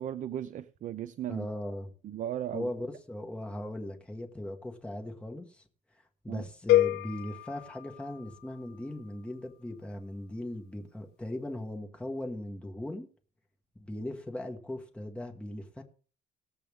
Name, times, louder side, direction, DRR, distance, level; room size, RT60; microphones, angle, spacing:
voice 1, 0.0-1.5 2.0-2.7 6.3-6.4, right 11 dB, 50° right, 0.6 m, -36 dB
voice 2, 1.3-1.9 2.5-5.6 6.2-13.1 13.8-15.8, left 1 dB, 5° left, 1.6 m, -39 dB
sound 1, 6.7-8.8, left 14 dB, 90° left, 0.4 m, -28 dB
19.0 x 7.9 x 3.6 m
cardioid pair, 130°, 16 cm